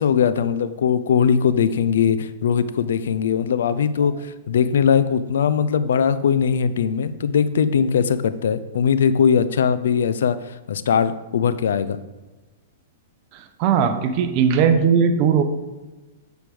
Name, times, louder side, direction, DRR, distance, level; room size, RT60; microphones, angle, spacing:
voice 1, 0.0-12.0, left 7 dB, 80° left, 13 dB, 0.5 m, -20 dB
voice 2, 13.3-15.4, right 7 dB, 40° right, 8 dB, 0.9 m, -18 dB
7.7 x 5.1 x 4.9 m, 1.2 s
hypercardioid pair, 135°, 0 cm